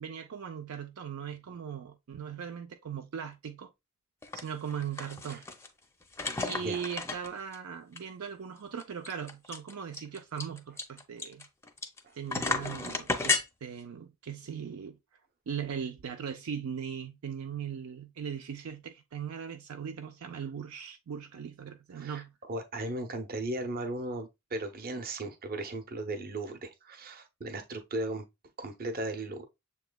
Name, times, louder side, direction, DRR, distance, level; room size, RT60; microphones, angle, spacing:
voice 1, 0.0-3.7 4.3-5.4 6.4-11.5 12.2-15.0 15.5-22.3, right 7 dB, 70° right, 0.5 m, -39 dB
sound 1, 4.2-4.4 4.7-5.7 6.1-7.6 8.0-8.1 8.3-8.4 8.8-12.0 12.3-13.4, left 3 dB, 10° left, 0.5 m, -32 dB
voice 2, 21.9-28.2 28.6-29.5, right 2 dB, 45° right, 0.7 m, -36 dB
6.8 x 3.1 x 2.2 m
head